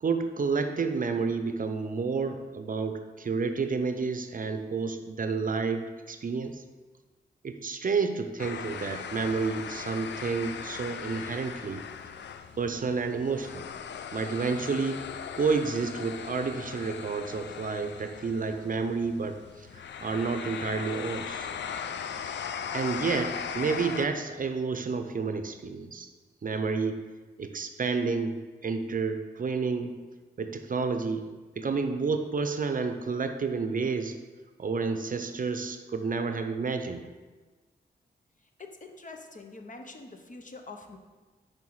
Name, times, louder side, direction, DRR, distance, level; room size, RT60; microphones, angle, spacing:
voice 1, 0.0-6.6 7.4-11.8 12.6-13.7 14.1-15.0 15.4-19.4 19.7-21.5 22.7-26.1 26.4-27.0 27.4-30.0 30.4-31.3 31.6-34.2 34.6-37.0, right 4 dB, 45° right, 7 dB, 0.6 m, -30 dB
sound 1, 8.4-24.1, left 7 dB, 75° left, 0.4 m, -38 dB
voice 2, 38.6-41.0, left 3 dB, 45° left, 4 dB, 0.9 m, -45 dB
5.5 x 5.2 x 4.7 m, 1.3 s
cardioid pair, 55°, 19 cm